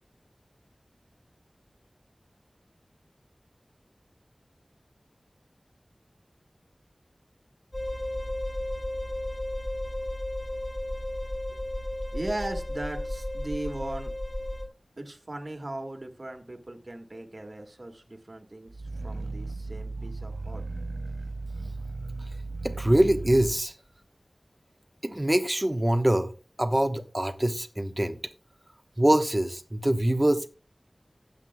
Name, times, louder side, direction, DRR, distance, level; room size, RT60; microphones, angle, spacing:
sound 1, 7.7-14.7, left 1 dB, 25° left, 5.5 m, -33 dB
voice 1, 12.1-14.1 15.0-18.7 19.0-20.6, right 2 dB, 50° right, 1.7 m, -38 dB
Growling, 18.7-23.6, right 3 dB, 75° right, 0.5 m, -36 dB
voice 2, 22.6-23.7 25.0-26.3 26.6-28.2 29.0-30.6, right 1 dB, 20° right, 1.1 m, -24 dB
15.5 x 8.2 x 2.2 m
wide cardioid pair, 50°, 0 cm